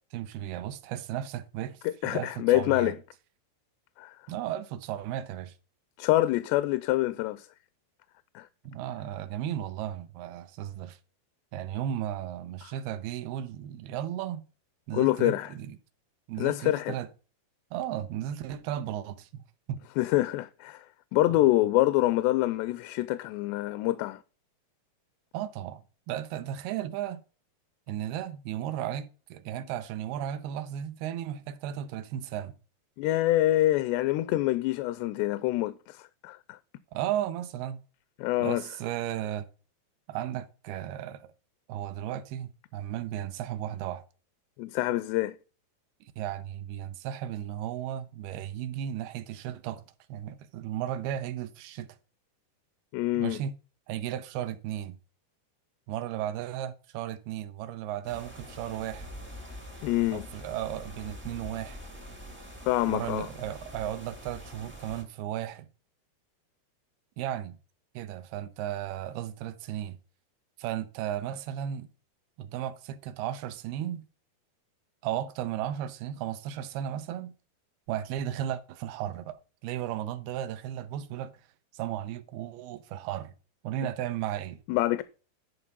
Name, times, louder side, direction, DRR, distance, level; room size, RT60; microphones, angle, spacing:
voice 1, 0.1-1.8 2.0-2.9 4.3-5.5 8.6-11.0 11.5-14.4 14.9-15.8 16.3-17.1 17.7-19.4 19.7-19.8 25.3-27.2 27.9-32.5 36.9-37.8 38.4-39.5 40.1-41.3 41.7-44.0 46.0-49.8 50.1-51.9 53.2-53.5 53.9-55.0 55.9-59.1 60.1-61.8 62.9-65.7 67.2-67.6 67.9-70.0 70.6-71.9 72.4-74.0 75.0-77.3 77.9-81.3 81.7-83.3 83.6-84.6, right 11 dB, 80° right, 2.5 m, -35 dB
voice 2, 1.8-3.0 4.0-4.2 6.0-7.5 8.4-8.5 12.6-12.7 14.9-15.5 16.4-17.0 20.0-20.8 21.1-24.2 33.0-36.6 38.2-38.6 44.6-45.4 52.9-53.4 59.8-60.2 62.7-63.3 84.7-85.0, left 16 dB, 85° left, 2.7 m, -26 dB
sound 1, 58.0-65.0, left 1 dB, 10° right, 0.5 m, -45 dB
11.0 x 4.5 x 5.4 m
omnidirectional pair, 4.8 m